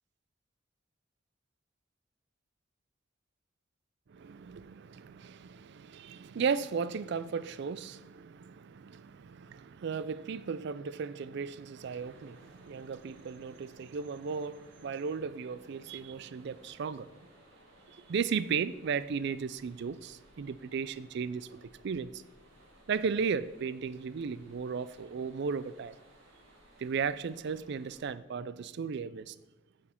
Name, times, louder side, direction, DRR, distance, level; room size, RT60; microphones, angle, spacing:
voice 1, 4.1-17.1 17.9-22.2 22.9-25.9 26.8-29.4, right 6 dB, 60° right, 0.4 m, -35 dB
sound 1, 11.7-28.1, right 1 dB, 85° right, 2.3 m, -60 dB
8.3 x 7.5 x 4.4 m
head